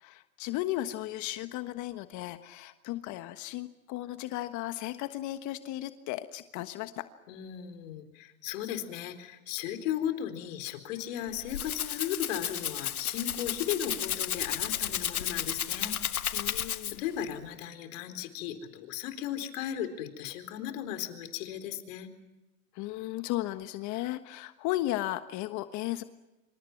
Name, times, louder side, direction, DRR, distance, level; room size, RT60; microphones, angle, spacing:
voice 1, 0.0-7.1 16.3-17.0 22.7-26.0, left 15 dB, 45° left, 10 dB, 1.4 m, -35 dB
voice 2, 7.3-16.4 16.9-22.1, left 10 dB, 60° left, 9 dB, 4.2 m, -36 dB
Rattle (instrument), 11.2-17.2, left 9 dB, 90° left, 1.4 m, -33 dB
27.5 x 26.5 x 5.9 m, 1.0 s
hypercardioid pair, 105°, 42 cm